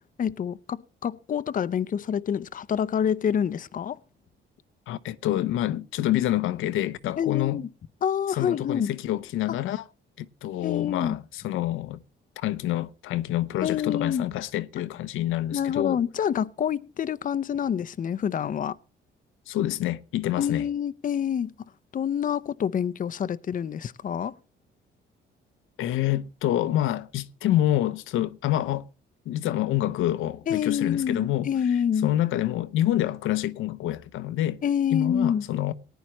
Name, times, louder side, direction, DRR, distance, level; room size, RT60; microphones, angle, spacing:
voice 1, 0.2-4.0 7.2-7.7 8.0-8.9 9.5-9.6 10.6-11.2 13.6-14.3 15.5-18.8 20.4-21.5 21.9-24.4 30.5-32.1 34.6-35.5, left 8 dB, 45° left, 0.6 m, -27 dB
voice 2, 4.9-7.6 8.4-9.8 10.2-12.0 12.4-16.0 19.5-20.7 25.8-28.9 29.3-31.5 32.0-34.6 34.9-35.7, left 13 dB, 85° left, 0.7 m, -27 dB
19.0 x 10.0 x 3.0 m
cardioid pair, 90°, 20 cm